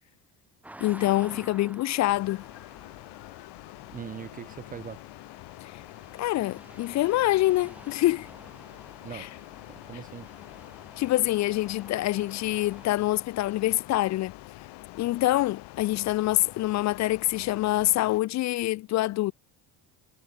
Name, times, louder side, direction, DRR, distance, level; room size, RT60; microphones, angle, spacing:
sound 1, 0.6-13.0, right 1 dB, 5° right, 0.9 m, -51 dB
voice 1, 0.8-2.4 5.6-5.7 6.2-8.3 9.1-9.3 11.0-14.3 15.0-19.3, left 16 dB, 40° left, 0.4 m, -25 dB
sound 2, 2.1-18.2, left 20 dB, 70° left, 2.9 m, -46 dB
voice 2, 3.9-5.1 9.0-9.3 9.7-10.3, right 8 dB, 20° right, 0.4 m, -41 dB
cardioid pair, 170°, 43 cm